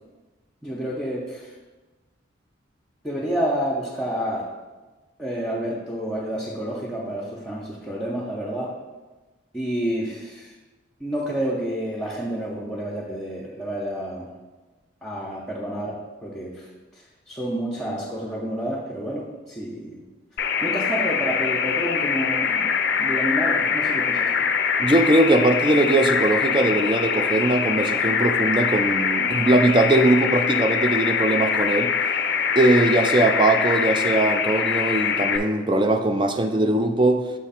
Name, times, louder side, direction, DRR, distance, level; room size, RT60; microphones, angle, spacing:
voice 1, 0.6-1.5 3.0-4.5 5.2-8.7 9.5-10.5 11.0-14.3 15.0-16.7 16.9-20.0 20.6-22.7 23.0-24.3, right 1 dB, 5° left, -6 dB, 0.7 m, -29 dB
sound 1, 20.4-35.4, left 6 dB, 55° left, 0.5 m, -23 dB
voice 2, 24.8-31.9 32.6-37.2, right 2 dB, 25° right, 7 dB, 0.4 m, -20 dB
7.3 x 3.1 x 5.7 m, 1.2 s
head